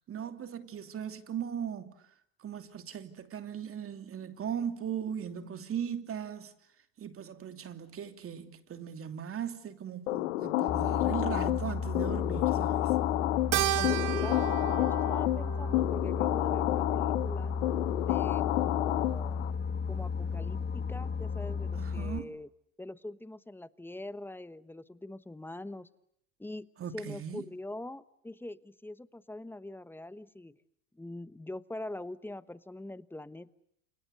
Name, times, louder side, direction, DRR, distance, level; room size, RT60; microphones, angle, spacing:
voice 1, 0.1-2.0 2.4-6.5 7.0-12.9 21.7-22.4 26.8-27.5, right 8 dB, 35° right, 2.9 m, -38 dB
sound 1, 10.1-19.5, left 18 dB, 75° left, 1.1 m, -30 dB
Boat Water vehicle, 10.7-22.2, left 5 dB, 25° left, 1.5 m, -34 dB
Keyboard (musical), 13.5-18.1, right 17 dB, 50° right, 1.5 m, -35 dB
voice 2, 13.8-14.5 14.8-17.5 18.0-19.4 19.9-22.5 22.8-25.9 26.4-30.6 30.9-33.5, left 1 dB, 5° left, 1.1 m, -43 dB
30.0 x 28.5 x 6.8 m
hypercardioid pair, 95°, 40 cm